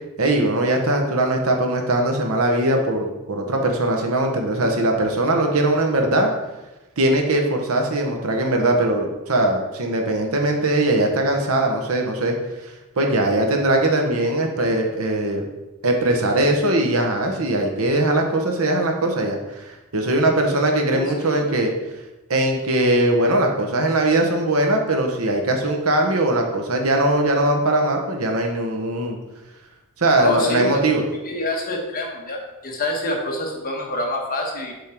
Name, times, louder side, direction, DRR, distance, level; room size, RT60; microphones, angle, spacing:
voice 1, 0.2-6.3 7.0-12.3 13.0-15.4 15.8-19.6 19.9-21.7 22.3-29.2 30.0-31.0, right 1 dB, 70° right, 2 dB, 1.0 m, -20 dB
voice 2, 20.9-21.5 30.1-30.8 31.2-34.7, left 1 dB, 40° left, 0 dB, 1.2 m, -27 dB
7.1 x 3.6 x 4.5 m, 1.0 s
head